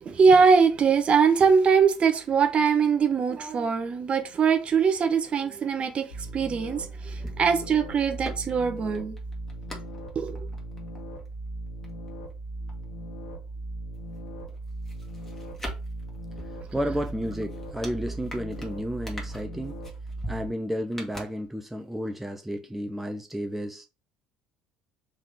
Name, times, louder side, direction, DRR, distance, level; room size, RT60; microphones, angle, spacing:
voice 1, 0.0-9.2 10.1-10.5, right 5 dB, 35° right, 0.7 m, -22 dB
sound 1, 6.1-20.5, right 2 dB, 75° left, 0.8 m, -38 dB
sound 2, 7.1-13.6 13.9-21.9 22.2-22.3, equal, 10° left, 1.6 m, -46 dB
voice 2, 16.4-19.8 20.3-23.9, equal, 5° right, 0.5 m, -32 dB
3.6 x 3.2 x 3.6 m
figure-of-eight pair, 55°, 3 cm